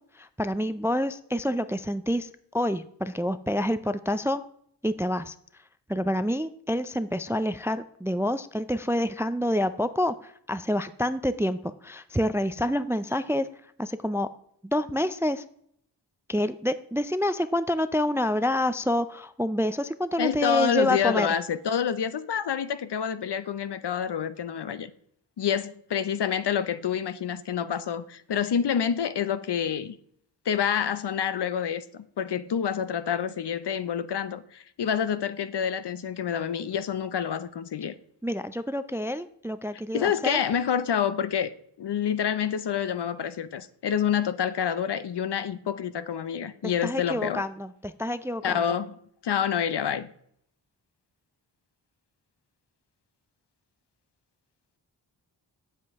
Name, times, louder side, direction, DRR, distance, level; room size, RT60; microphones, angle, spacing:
voice 1, 0.2-4.4 4.8-5.3 5.9-13.5 13.8-14.3 14.6-15.4 16.3-21.3 38.2-40.4 46.6-48.6, left 1 dB, 5° right, 0.3 m, -27 dB
voice 2, 20.2-24.9 25.4-30.0 30.5-37.9 39.9-41.5 41.8-47.4 48.4-49.0 49.2-50.1, left 8 dB, 60° left, 0.6 m, -28 dB
7.6 x 7.5 x 3.5 m
cardioid pair, 45°, 46 cm